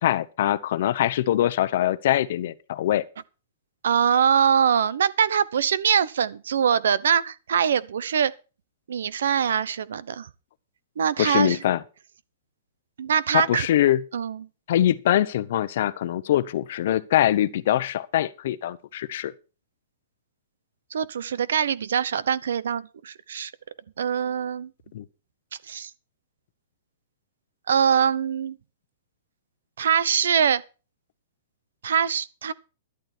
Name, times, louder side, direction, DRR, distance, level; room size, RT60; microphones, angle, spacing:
voice 1, 0.0-3.0 11.2-11.8 13.3-14.0 14.7-19.3 24.9-25.0, left 12 dB, 45° left, 0.9 m, -23 dB
voice 2, 3.8-8.3 8.9-10.3 11.0-11.6 13.0-13.7 14.1-14.5 20.9-23.5 24.0-24.7 25.7-25.9 27.7-28.6 29.8-30.6 31.8-32.5, right 8 dB, 80° right, 0.9 m, -23 dB
12.5 x 11.5 x 4.4 m
hypercardioid pair, 175°, 0 cm